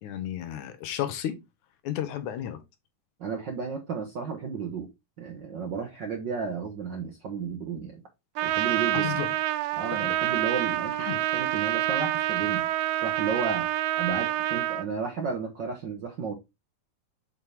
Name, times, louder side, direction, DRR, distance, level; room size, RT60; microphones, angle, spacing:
voice 1, 0.0-1.4 1.8-2.6 9.0-9.3 11.0-11.2, left 11 dB, 90° left, 2.4 m, -32 dB
voice 2, 3.2-4.9 5.2-8.0 8.4-9.1 9.8-12.7 12.9-13.7 14.0-16.3, right 6 dB, 65° right, 1.1 m, -33 dB
Trumpet, 8.4-14.9, right 15 dB, 85° right, 2.0 m, -27 dB
6.3 x 4.7 x 3.4 m
omnidirectional pair, 3.4 m